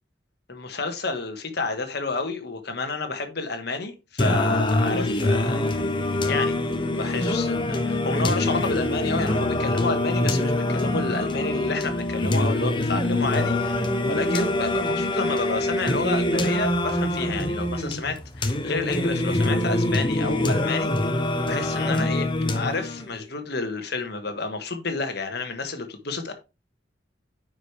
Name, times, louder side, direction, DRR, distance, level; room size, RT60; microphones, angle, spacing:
voice 1, 0.5-5.6 6.3-6.6 7.0-26.3, left 3 dB, 60° left, 1.5 m, -30 dB
Singing, 4.2-23.2, left 1 dB, 25° left, 0.9 m, -24 dB
9.2 x 5.1 x 3.3 m
head